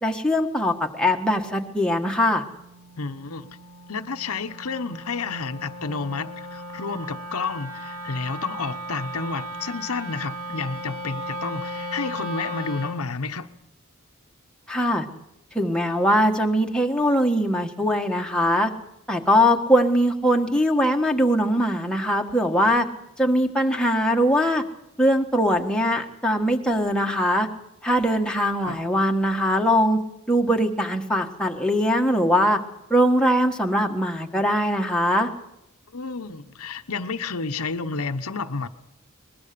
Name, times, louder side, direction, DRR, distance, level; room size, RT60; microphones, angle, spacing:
voice 1, 0.0-2.4 14.7-15.0 15.5-18.7 19.1-22.8 23.2-24.6 25.0-27.5 27.8-30.0 30.3-32.6 32.9-35.3, equal, 5° left, 1.5 m, -21 dB
Wind instrument woodwind instrument, 1.5-13.1, equal, 75° right, 2.4 m, -37 dB
voice 2, 3.0-3.5 3.9-13.5 28.6-28.8 35.9-38.7, left 4 dB, 85° left, 1.1 m, -30 dB
22.0 x 21.0 x 6.9 m
head